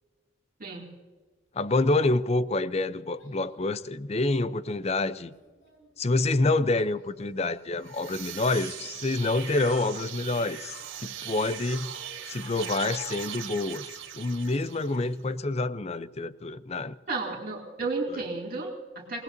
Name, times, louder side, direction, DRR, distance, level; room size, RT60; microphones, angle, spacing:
voice 1, 1.5-5.3 6.0-11.9 12.3-16.9, left 2 dB, 35° left, 0.5 m, -27 dB
Child speech kid speaking, 2.7-14.6 15.0-15.4 15.9-16.0, left 1 dB, 85° left, 6.7 m, -53 dB
sound 1, 7.7-15.1, right 9 dB, 75° right, 2.0 m, -40 dB
voice 2, 17.1-19.2, right 3 dB, 45° right, 2.6 m, -33 dB
27.5 x 19.5 x 2.7 m
head